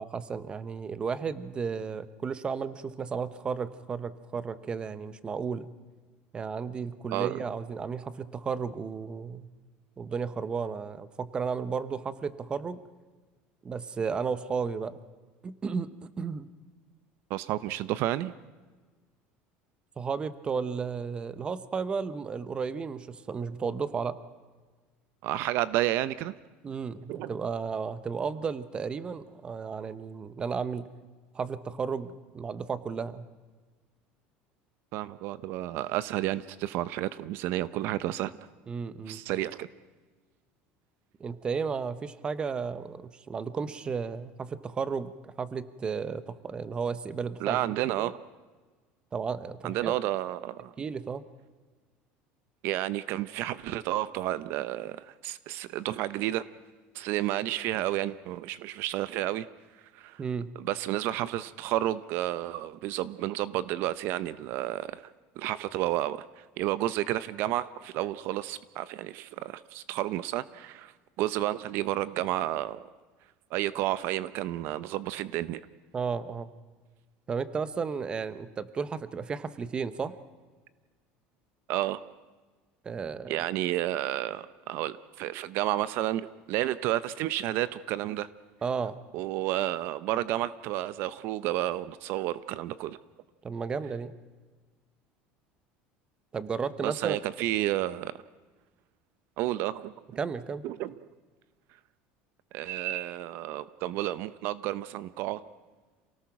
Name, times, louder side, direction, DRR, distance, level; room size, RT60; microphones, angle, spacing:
voice 1, 0.0-5.7 6.3-9.5 10.0-12.8 13.6-15.0 15.4-15.9 16.2-16.5 20.0-24.2 26.6-30.9 31.3-33.3 38.7-39.2 41.2-48.1 49.1-50.0 50.8-51.2 60.2-60.5 75.9-76.5 77.3-80.1 82.8-83.4 88.6-89.0 93.4-94.1 96.3-97.2 100.2-100.7, right 5 dB, 20° right, 14 dB, 0.9 m, -33 dB
voice 2, 17.3-18.3 25.2-26.3 27.1-27.3 34.9-38.5 39.1-39.7 47.4-48.2 49.6-50.7 52.6-56.5 56.9-59.5 59.9-60.2 60.6-65.0 65.4-70.9 71.2-72.8 73.5-75.6 81.7-82.0 83.3-88.3 89.1-93.0 96.8-98.1 99.4-99.9 100.6-100.9 102.5-105.4, right 14 dB, 60° right, 16 dB, 0.7 m, -31 dB
28.0 x 18.0 x 6.0 m, 1.3 s
cardioid pair, 150°, 4 cm